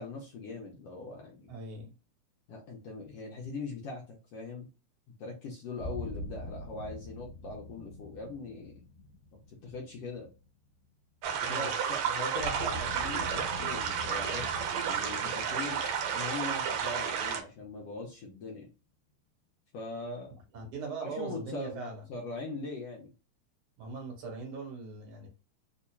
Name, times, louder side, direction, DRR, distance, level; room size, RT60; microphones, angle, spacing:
voice 1, 0.0-1.5 2.5-4.7 5.2-8.8 9.5-10.3 11.3-15.8 16.1-18.7 19.7-20.3 21.0-23.1, left 3 dB, 70° left, 1.6 m, -41 dB
voice 2, 1.5-1.9 11.4-11.7 20.5-22.0 23.8-25.3, right 4 dB, 50° right, 2.0 m, -40 dB
sound 1, 5.8-10.8 12.4-18.1, left 2 dB, 85° left, 2.0 m, -44 dB
sound 2, 11.2-17.4, right 7 dB, 70° right, 1.8 m, -32 dB
4.6 x 2.7 x 2.2 m
omnidirectional pair, 3.6 m